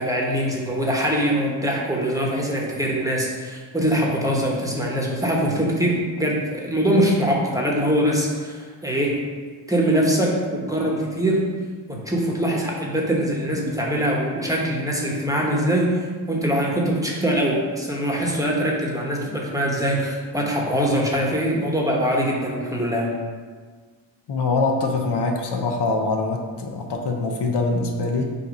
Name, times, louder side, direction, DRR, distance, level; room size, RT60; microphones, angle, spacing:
voice 1, 0.0-9.2 9.7-11.4 11.9-16.0 16.3-23.1, equal, 5° right, -2 dB, 1.1 m, -23 dB
voice 2, 24.3-28.4, left 3 dB, 60° left, 2 dB, 0.8 m, -24 dB
6.5 x 2.8 x 5.2 m, 1.5 s
cardioid pair, 95°, 46 cm